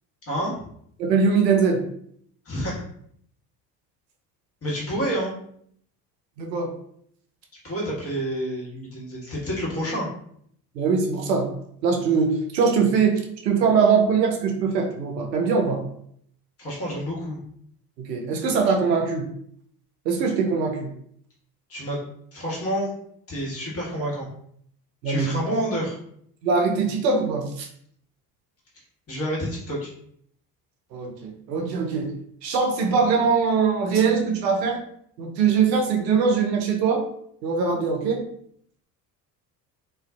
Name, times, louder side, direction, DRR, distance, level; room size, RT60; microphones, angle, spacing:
voice 1, 1.0-1.8 6.4-6.8 10.8-11.5 11.8-15.8 18.0-19.2 20.1-20.9 25.0-25.3 26.4-27.7 30.9-32.1 32.4-34.8 35.2-37.0 37.4-38.2, right 5 dB, 85° right, 2 dB, 0.6 m, -22 dB
voice 2, 2.4-2.8 4.6-5.3 7.6-10.1 16.6-17.4 21.7-22.0 22.3-22.9 23.3-24.3 25.0-26.0 29.1-29.9, equal, 30° left, -5 dB, 1.2 m, -28 dB
2.4 x 2.3 x 2.3 m, 0.67 s
hypercardioid pair, 65°, 49 cm